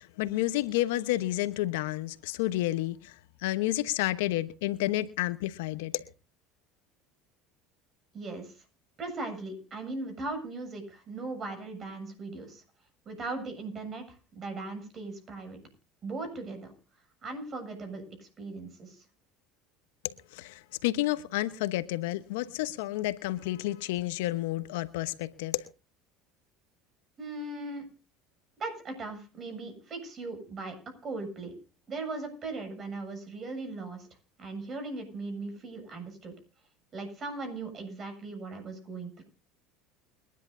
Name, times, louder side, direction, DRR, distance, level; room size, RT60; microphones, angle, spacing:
voice 1, 0.0-3.1 3.4-6.0 20.3-25.7, left 16 dB, 80° left, 1.0 m, -30 dB
voice 2, 8.1-8.6 9.0-12.6 13.1-15.6 16.0-16.7 17.2-19.1 27.2-27.9 28.6-30.8 31.0-31.5 31.9-34.1 34.4-36.3 36.9-39.2, right 3 dB, 40° right, 7.5 m, -38 dB
29.5 x 10.5 x 2.7 m
hypercardioid pair, 90°, 0 cm